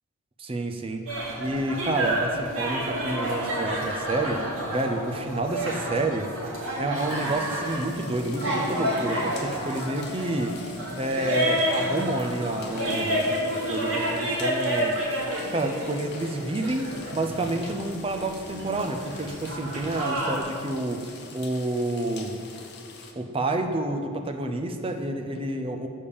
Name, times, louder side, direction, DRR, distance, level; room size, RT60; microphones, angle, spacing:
voice 1, 0.4-1.1 1.4-4.4 4.7-6.3 6.8-10.6 10.9-13.4 13.7-15.0 15.5-16.9 17.1-22.4 23.2-25.9, right 2 dB, 25° right, 5 dB, 0.5 m, -29 dB
sound 1, 1.1-20.4, equal, 75° right, 2.0 m, -30 dB
sound 2, 7.0-23.1, left 5 dB, 50° left, 0.7 m, -45 dB
7.0 x 5.2 x 6.8 m, 2.3 s
head